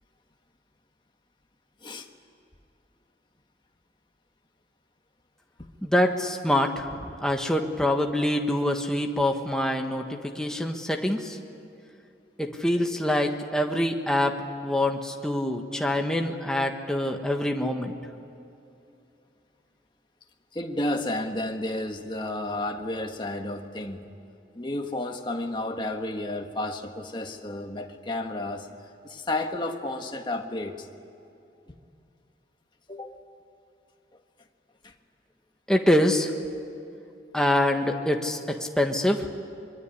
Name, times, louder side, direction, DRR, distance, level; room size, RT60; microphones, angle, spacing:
voice 1, 5.8-6.9 7.2-11.4 12.4-17.9 35.7-36.3 37.3-39.3, left 1 dB, 5° left, 3 dB, 1.5 m, -25 dB
voice 2, 20.5-24.1 24.5-28.7 29.0-30.9 32.9-33.2 34.8-34.9, left 1 dB, 25° left, 4 dB, 1.5 m, -32 dB
24.0 x 22.5 x 9.8 m, 2.7 s
head